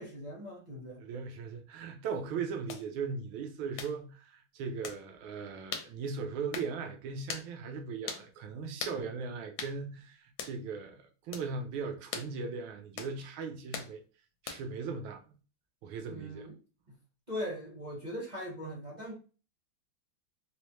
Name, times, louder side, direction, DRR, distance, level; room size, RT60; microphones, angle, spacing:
voice 1, 0.0-1.1 16.1-16.5 16.9-17.0 17.3-19.1, equal, 35° right, 0.7 m, -40 dB
voice 2, 1.0-14.0 14.4-15.2 15.8-16.5, right 5 dB, 75° right, 1.4 m, -38 dB
sound 1, 2.7-2.9 3.8-4.0 4.8-5.0 5.7-5.9 6.5-6.7 7.3-7.5 8.1-8.3 8.8-9.0 9.6-9.8 10.4-10.6 11.3-11.5 12.1-12.3 13.0-13.2 13.7-13.9 14.5-14.8, left 6 dB, 80° left, 1.4 m, -39 dB
4.2 x 2.0 x 3.0 m
omnidirectional pair, 2.3 m